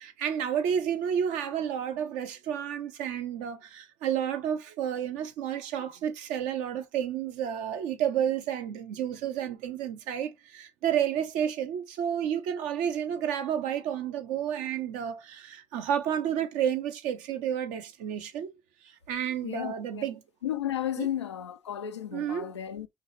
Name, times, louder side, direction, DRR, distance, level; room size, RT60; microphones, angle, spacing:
voice 1, 0.0-18.5 18.8-20.2 21.0-21.1 22.1-22.5, right 9 dB, 65° right, 1.0 m, -31 dB
voice 2, 19.4-20.0 20.4-22.9, left 11 dB, 85° left, 0.5 m, -33 dB
5.7 x 3.2 x 2.7 m
figure-of-eight pair, 55°, 14 cm